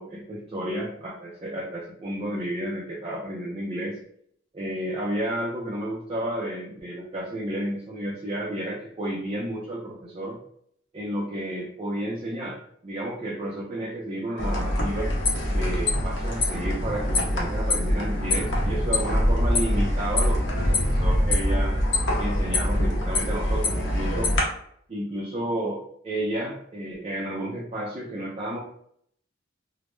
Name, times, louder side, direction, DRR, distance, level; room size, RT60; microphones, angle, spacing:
voice 1, 0.0-4.0 4.5-10.4 10.9-12.6 12.8-15.1 15.5-21.7 22.2-24.3 24.9-28.6, right 1 dB, 30° right, -5 dB, 0.4 m, -31 dB
sound 1, 14.4-24.4, left 1 dB, 65° left, 0.7 m, -24 dB
2.0 x 2.0 x 3.0 m, 0.66 s
head